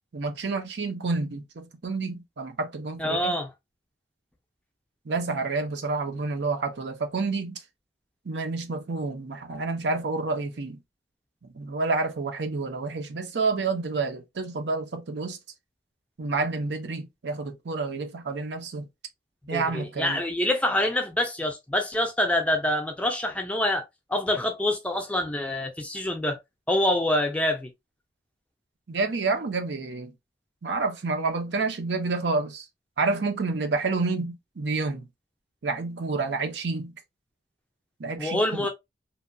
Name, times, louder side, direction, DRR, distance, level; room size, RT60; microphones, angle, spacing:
voice 1, 0.1-3.4 5.0-7.6 8.2-10.8 11.5-15.4 16.2-18.9 19.5-20.2 28.9-30.1 30.6-32.7 33.0-35.1 35.6-36.9 38.0-38.4, right 3 dB, 85° right, 0.6 m, -29 dB
voice 2, 3.0-3.5 19.5-23.8 24.1-26.4 26.7-27.7 38.2-38.7, left 1 dB, 5° left, 0.4 m, -26 dB
2.9 x 2.2 x 2.5 m
head